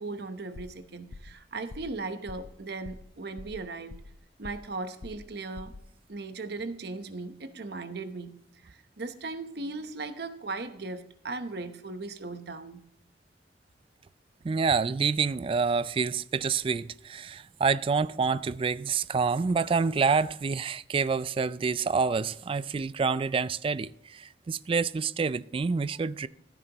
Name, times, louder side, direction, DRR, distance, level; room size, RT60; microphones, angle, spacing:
voice 1, 0.0-4.0 4.4-5.7 6.1-8.3 8.6-12.8, right 3 dB, 65° right, 0.9 m, -37 dB
sound 1, 0.6-0.8 1.1-1.4 1.7-2.0 2.3-2.5 2.8-3.1 3.4-4.2 4.4-4.7 5.0-5.3 5.6-5.9, left 3 dB, 85° left, 0.6 m, -45 dB
voice 2, 14.4-26.3, right 5 dB, 30° right, 0.3 m, -27 dB
15.0 x 9.9 x 2.9 m
head